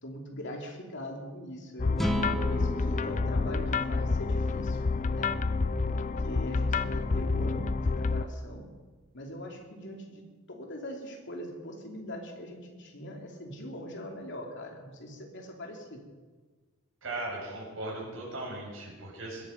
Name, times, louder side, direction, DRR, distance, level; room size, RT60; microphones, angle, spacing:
voice 1, 0.0-2.0 2.3-4.8 5.1-5.3 5.8-8.7 9.1-16.1, equal, 60° left, 2 dB, 2.9 m, -42 dB
sound 1, 1.8-8.2, left 3 dB, 40° left, 0.5 m, -28 dB
sound 2, 2.0-5.3, right 1 dB, ahead, 1.0 m, -36 dB
voice 2, 17.0-19.5, right 2 dB, 65° right, -3 dB, 6.6 m, -38 dB
21.5 x 11.5 x 5.2 m, 1.4 s
head